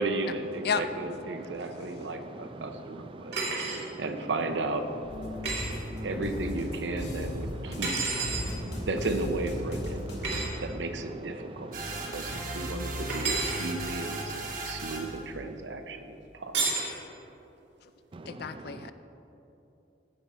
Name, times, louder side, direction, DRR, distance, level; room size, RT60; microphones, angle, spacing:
voice 1, 0.0-3.3 4.0-4.9 6.0-7.9 8.9-10.0 10.3-11.7 12.1-14.3 14.6-16.6, right 2 dB, 85° right, 8 dB, 0.7 m, -34 dB
voice 2, 3.1-4.0 5.4-6.1 8.4-8.8 10.2-10.6 11.7-12.1 18.1-18.9, right 2 dB, 30° right, 10 dB, 0.4 m, -45 dB
sound 1, 3.3-3.8 5.4-5.7 7.8-8.5 10.2-10.5 13.1-13.6 16.5-16.9, right 4 dB, 70° right, 2.3 m, -30 dB
sound 2, 5.0-10.4, left 1 dB, 80° left, 1.6 m, -36 dB
sound 3, 11.7-15.2, right 2 dB, 50° right, 1.3 m, -36 dB
voice 3, 18.3-18.9, left 6 dB, 60° left, 11 dB, 0.4 m, -31 dB
14.5 x 5.7 x 4.2 m, 2.9 s
head